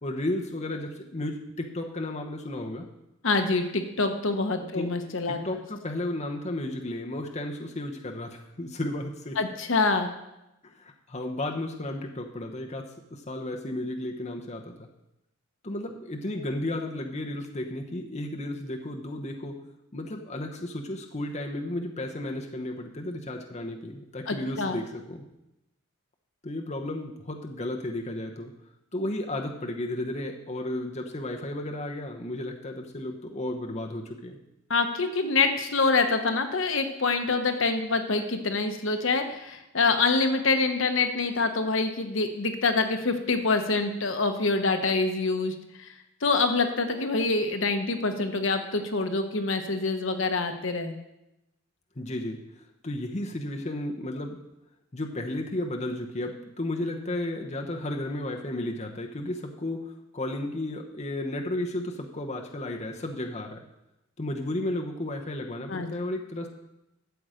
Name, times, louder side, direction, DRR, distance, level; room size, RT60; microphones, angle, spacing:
voice 1, 0.0-2.9 4.6-5.0 5.3-9.4 10.6-14.9 15.6-19.6 19.9-25.2 26.4-28.5 28.9-34.4 52.0-52.4 52.8-54.4 54.9-63.6 64.2-66.5, left 1 dB, 35° left, 1 dB, 1.0 m, -33 dB
voice 2, 3.2-5.4 9.4-10.1 24.3-24.8 34.7-45.5 45.8-45.9 46.2-51.0 65.7-65.9, left 3 dB, 65° left, 6 dB, 1.0 m, -26 dB
12.5 x 7.7 x 5.1 m, 0.90 s
head